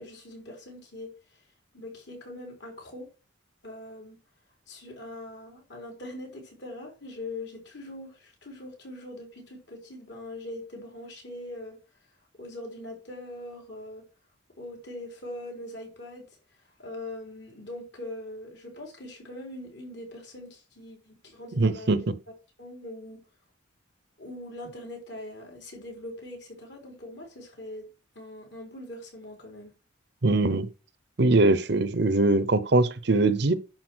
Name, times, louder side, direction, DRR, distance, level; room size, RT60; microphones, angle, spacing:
voice 1, 0.0-1.4 1.7-3.1 3.6-4.2 4.7-11.8 12.4-14.0 14.6-16.3 16.8-22.1 22.6-23.2 24.2-27.8 28.1-29.7, left 1 dB, 55° left, 4.0 m, -42 dB
voice 2, 21.6-22.0 30.2-30.7 31.2-33.5, right 2 dB, 55° right, 0.8 m, -22 dB
10.5 x 4.3 x 6.3 m
head